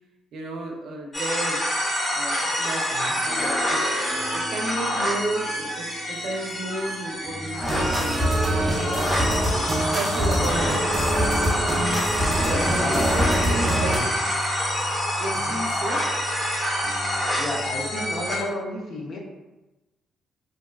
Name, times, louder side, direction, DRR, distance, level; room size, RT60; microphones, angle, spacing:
voice 1, 0.3-1.6 2.1-3.0 3.2-3.8 4.3-8.3 8.8-9.5 9.8-11.0 12.3-14.1 15.2-16.0, right 2 dB, 70° right, 0 dB, 0.5 m, -33 dB
sound 1, 1.1-18.4, equal, 35° left, 0.9 m, -27 dB
sound 2, 3.1-18.4, left 1 dB, 75° left, 1.0 m, -38 dB
sound 3, 7.6-14.0, right 1 dB, 10° right, 0.5 m, -24 dB
voice 2, 12.6-13.4 13.7-14.0 15.3-15.6 17.4-19.2, left 1 dB, 60° left, -2 dB, 0.6 m, -32 dB
2.5 x 2.2 x 2.2 m, 1.1 s
cardioid pair, 90°, 0 cm